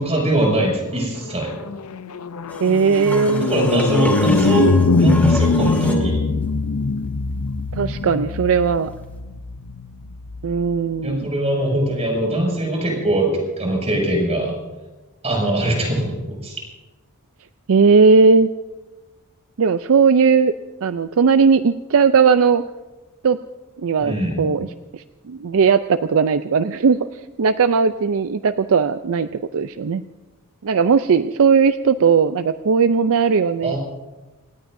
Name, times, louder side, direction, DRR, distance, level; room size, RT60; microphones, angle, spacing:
voice 1, 0.0-1.5 3.4-4.7 5.0-6.2 11.0-14.5 15.2-16.6 24.0-24.5 33.6-33.8, right 1 dB, 30° right, -1 dB, 6.6 m, -21 dB
sound 1, 1.1-10.6, left 4 dB, 75° left, 0.6 m, -22 dB
sound 2, 2.5-6.1 9.0-9.1, left 1 dB, 5° left, 2.0 m, -31 dB
voice 2, 2.6-3.5 7.8-8.9 10.4-11.3 17.7-18.5 19.6-20.5 20.8-22.6 23.2-23.4 23.8-24.7 24.9-27.1 27.4-30.0 30.6-33.7, right 5 dB, 65° right, 11 dB, 0.5 m, -17 dB
27.0 x 18.5 x 2.7 m, 1.2 s
head